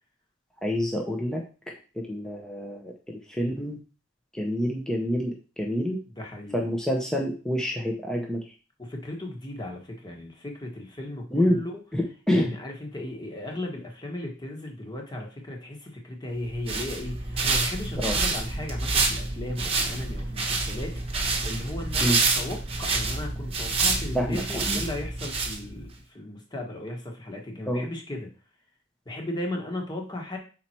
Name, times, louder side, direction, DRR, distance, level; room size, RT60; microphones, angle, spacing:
voice 1, 0.6-1.4 1.9-3.8 4.3-6.0 6.5-8.4 11.3-11.6 11.9-12.5 18.0-18.2 22.0-22.2 24.1-24.8 27.7-27.9, equal, 5° left, -1 dB, 0.8 m, -27 dB
voice 2, 6.2-6.6 8.8-11.8 12.3-28.3 29.0-30.4, left 1 dB, 20° left, 1 dB, 1.4 m, -36 dB
sound 1, 16.4-25.9, right 3 dB, 25° right, 1.1 m, -28 dB
5.6 x 4.4 x 4.4 m, 0.36 s
head